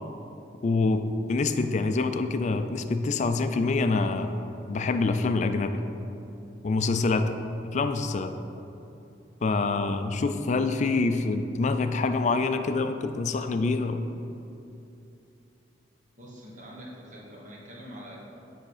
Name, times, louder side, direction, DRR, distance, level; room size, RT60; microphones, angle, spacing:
voice 1, 0.6-4.3 4.7-5.8 6.6-7.4 7.7-8.3 9.4-14.0, left 3 dB, 40° left, 8 dB, 0.3 m, -26 dB
voice 2, 16.2-18.2, equal, 45° right, -3 dB, 1.2 m, -44 dB
8.2 x 3.6 x 4.9 m, 2.8 s
head